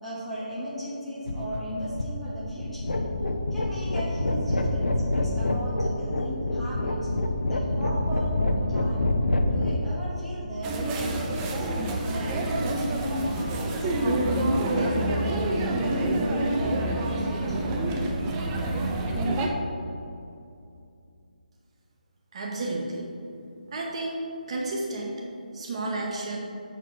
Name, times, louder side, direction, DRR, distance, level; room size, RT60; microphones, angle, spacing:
voice 1, 0.0-3.1 3.5-7.0 7.5-9.1 9.5-11.7 12.1-13.9 14.2-17.8, equal, ahead, -10 dB, 1.1 m, -36 dB
sound 1, 1.3-9.8, left 2 dB, 90° left, 0.6 m, -27 dB
sound 2, 10.6-19.5, right 1 dB, 15° right, 0.4 m, -27 dB
voice 2, 22.3-23.1 23.7-25.2 25.5-26.4, right 2 dB, 40° right, -1 dB, 0.8 m, -32 dB
6.1 x 4.5 x 4.5 m, 2.6 s
figure-of-eight pair, 160°, 5 cm